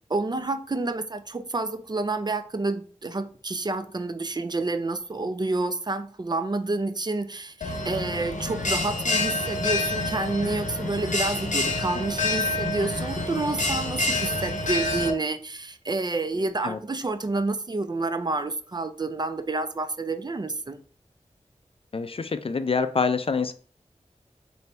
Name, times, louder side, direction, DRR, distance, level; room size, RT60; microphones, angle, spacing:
voice 1, 0.1-20.8, right 3 dB, 35° right, 10 dB, 0.4 m, -29 dB
Bell, 7.6-15.1, left 2 dB, 80° left, 0.7 m, -28 dB
voice 2, 21.9-23.5, left 5 dB, 50° left, 10 dB, 0.4 m, -26 dB
3.3 x 2.6 x 4.2 m, 0.42 s
cardioid pair, 40°, 13 cm